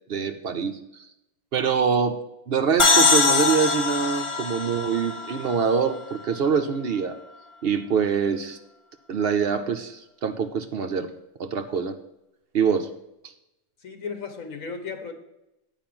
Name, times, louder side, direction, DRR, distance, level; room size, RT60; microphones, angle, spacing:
voice 1, 0.1-1.1 1.5-2.2 2.5-7.2 7.6-8.6 9.1-11.1 11.4-12.0 12.5-12.9 13.2-13.3, right 6 dB, 55° right, 8 dB, 0.8 m, -24 dB
sound 1, 2.8-6.4, left 4 dB, 30° left, 0.6 m, -22 dB
voice 2, 13.8-15.1, left 5 dB, 85° left, 5 dB, 1.6 m, -35 dB
9.0 x 4.9 x 7.5 m, 0.88 s
omnidirectional pair, 1.4 m